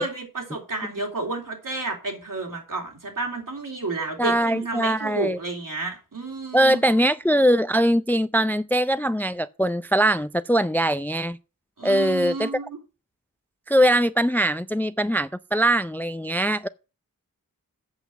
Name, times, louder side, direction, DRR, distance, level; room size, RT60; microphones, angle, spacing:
voice 1, 0.0-6.8 11.8-12.8, right 3 dB, 70° right, 3.5 m, -31 dB
voice 2, 4.2-5.4 6.5-11.4 11.8-12.5 13.7-16.7, right 1 dB, 5° left, 0.4 m, -21 dB
8.0 x 5.9 x 6.9 m
cardioid pair, 45°, 34 cm